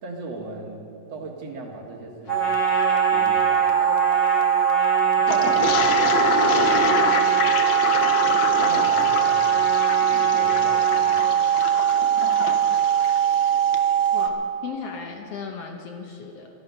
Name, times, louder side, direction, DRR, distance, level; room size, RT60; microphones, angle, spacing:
voice 1, 0.0-2.6 3.1-4.0 5.2-7.5 8.4-9.6 10.0-11.7 12.6-12.9, right 3 dB, 60° right, 1 dB, 2.4 m, -38 dB
Trumpet, 2.3-11.3, equal, 40° left, 2.4 m, -29 dB
sound 1, 2.3-14.3, right 10 dB, 80° right, 1.2 m, -21 dB
Toilet flush, 5.3-13.9, left 6 dB, 85° left, 1.0 m, -28 dB
voice 2, 14.1-16.5, left 5 dB, 65° left, 3 dB, 1.8 m, -36 dB
16.5 x 12.5 x 5.4 m, 2.8 s
omnidirectional pair, 3.4 m